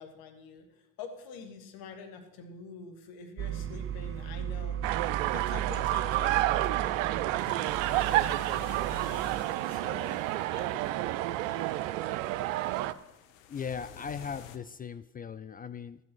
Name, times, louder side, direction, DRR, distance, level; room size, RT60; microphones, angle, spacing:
voice 1, 0.0-5.0 5.3-10.3 10.5-11.8, left 5 dB, 65° left, 7 dB, 1.8 m, -47 dB
sound 1, 3.4-9.4, right 9 dB, 35° right, 0.6 m, -37 dB
sound 2, 4.8-12.9, right 15 dB, 75° right, 0.6 m, -30 dB
sound 3, 5.0-14.6, left 8 dB, 80° left, 0.9 m, -52 dB
voice 2, 13.5-16.0, left 7 dB, 25° left, 14 dB, 0.4 m, -38 dB
12.0 x 8.3 x 6.1 m, 0.92 s
hypercardioid pair, 60°, 39 cm